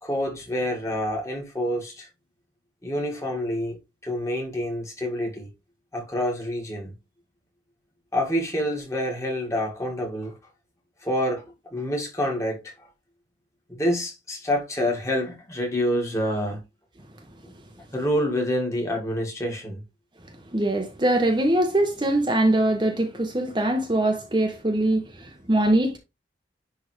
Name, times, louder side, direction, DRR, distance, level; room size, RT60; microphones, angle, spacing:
voice 1, 0.0-2.1 2.8-3.8 4.0-5.5 5.9-6.9 8.1-10.3 11.0-12.9 13.7-16.6 17.4-17.5 17.9-19.8, equal, 15° left, 1.9 m, -27 dB
voice 2, 20.5-26.0, right 1 dB, 25° right, 0.8 m, -22 dB
10.0 x 3.4 x 3.2 m
head